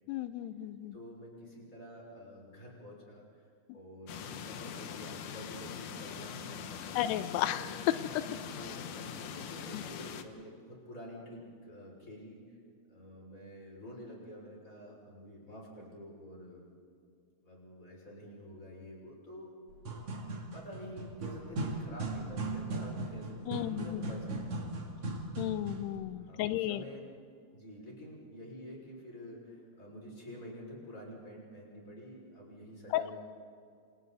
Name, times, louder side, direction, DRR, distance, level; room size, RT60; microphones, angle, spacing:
voice 1, 0.1-0.9 7.0-7.7 9.7-9.8 23.5-24.1 25.4-26.8 32.9-33.0, left 13 dB, 90° left, 12 dB, 2.8 m, -33 dB
voice 2, 0.9-3.2 3.7-7.0 7.5-12.4 12.9-16.7 17.4-19.5 20.5-24.6 26.2-27.0 27.5-33.2, equal, 20° left, -3 dB, 6.4 m, -48 dB
sound 1, 4.1-10.2, left 8 dB, 65° left, 2.2 m, -43 dB
sound 2, 19.7-26.0, right 2 dB, 45° right, 2.8 m, -38 dB
28.5 x 27.5 x 4.2 m, 2.3 s
omnidirectional pair, 4.6 m